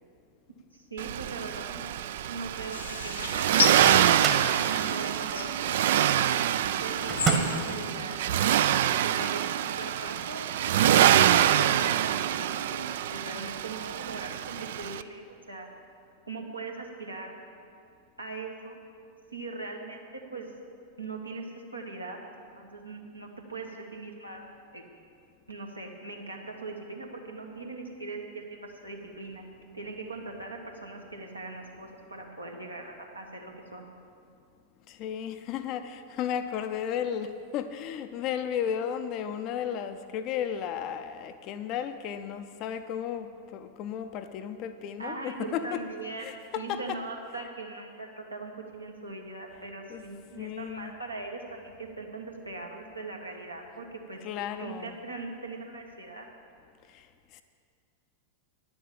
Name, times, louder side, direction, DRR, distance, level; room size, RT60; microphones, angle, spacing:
voice 1, 0.7-4.3 4.7-6.1 6.8-15.7 16.3-17.3 18.2-18.8 19.3-20.5 21.0-24.4 24.7-24.8 25.5-29.4 29.7-33.9 45.0-54.2 54.6-56.3, right 3 dB, 85° right, 0 dB, 1.5 m, -40 dB
Accelerating revving vroom, 1.0-15.0, right 11 dB, 55° right, 0.3 m, -25 dB
sound 1, 2.7-6.2 6.8-7.9, left 6 dB, 70° left, 0.8 m, -34 dB
Microwave oven, 3.5-4.6 7.1-7.7, right 6 dB, 30° right, 1.3 m, -29 dB
voice 2, 34.9-45.8 46.2-47.0 49.9-50.0 50.3-50.9 54.2-55.0 56.9-57.4, left 9 dB, 40° left, 9 dB, 0.5 m, -34 dB
10.0 x 7.0 x 8.8 m, 2.4 s
figure-of-eight pair, 90°, 0 cm